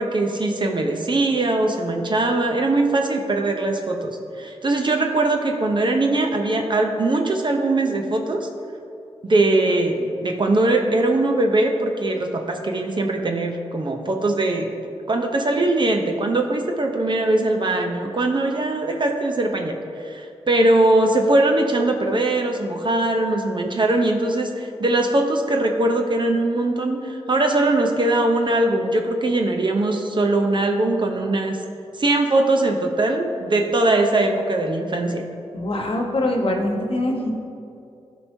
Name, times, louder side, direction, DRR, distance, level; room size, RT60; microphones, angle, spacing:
voice 1, 0.0-8.5 9.2-14.7 15.1-31.6 32.0-35.2, right 2 dB, 45° right, 3 dB, 0.7 m, -21 dB
voice 2, 35.5-37.3, left 1 dB, 55° left, 1 dB, 1.2 m, -23 dB
12.5 x 4.6 x 2.7 m, 2.6 s
cardioid pair, 50°, 11 cm